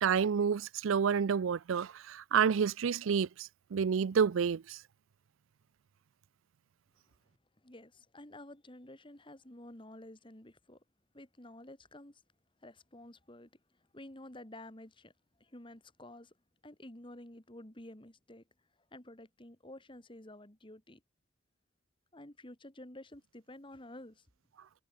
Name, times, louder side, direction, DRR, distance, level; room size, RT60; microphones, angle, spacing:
voice 1, 0.0-4.8, right 6 dB, 85° right, 0.4 m, -29 dB
voice 2, 7.6-10.8 11.1-12.2 12.6-13.5 13.9-15.1 15.4-16.3 16.6-18.4 18.9-21.0 22.1-24.2, left 1 dB, 25° left, 2.3 m, -51 dB
head